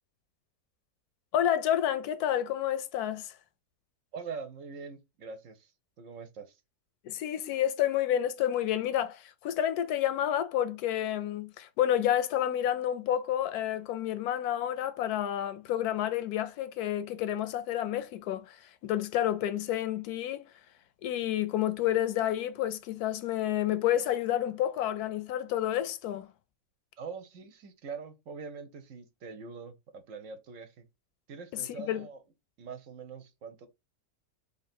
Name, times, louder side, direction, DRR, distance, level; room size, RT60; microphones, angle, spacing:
voice 1, 1.3-3.3 7.0-18.6 18.8-20.5 21.0-26.3 31.6-32.1, left 11 dB, 85° left, 1.1 m, -29 dB
voice 2, 4.1-5.7 6.0-6.6 27.0-30.9 31.3-32.2 32.6-33.7, right 5 dB, 65° right, 0.9 m, -43 dB
3.1 x 2.7 x 4.2 m
omnidirectional pair, 1.6 m